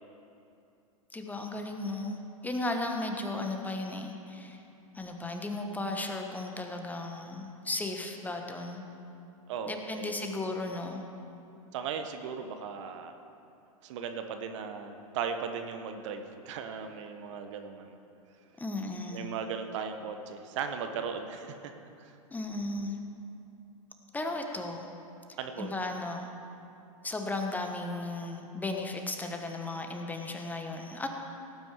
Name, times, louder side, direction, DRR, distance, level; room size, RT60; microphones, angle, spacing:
voice 1, 1.1-4.6 4.9-8.8 9.7-11.0 18.6-19.3 22.3-23.0 24.1-24.9 25.6-26.3 27.0-31.1, left 2 dB, 10° left, 3 dB, 1.2 m, -35 dB
voice 2, 9.5-10.2 11.7-13.1 13.8-18.0 19.1-21.5 22.0-22.1 25.4-25.7, right 6 dB, 55° right, 7 dB, 1.1 m, -37 dB
17.5 x 9.1 x 4.8 m, 2.7 s
hypercardioid pair, 105°, 18 cm